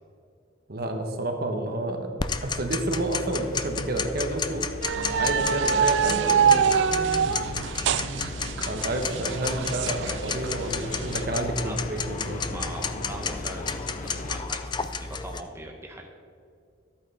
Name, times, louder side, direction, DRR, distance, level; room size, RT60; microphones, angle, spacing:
voice 1, 0.7-4.7 5.0-6.8 8.7-12.5, right 1 dB, 55° right, 5 dB, 1.0 m, -30 dB
Tick-tock, 2.2-15.4, left 5 dB, 25° left, 0.4 m, -32 dB
sound 1, 3.3-14.4, left 2 dB, 45° left, 0.7 m, -39 dB
sound 2, 4.8-11.2, right 7 dB, 75° right, 0.4 m, -25 dB
voice 2, 12.5-16.1, right 1 dB, 15° right, 1 dB, 0.9 m, -41 dB
12.5 x 8.6 x 4.1 m, 2.3 s
head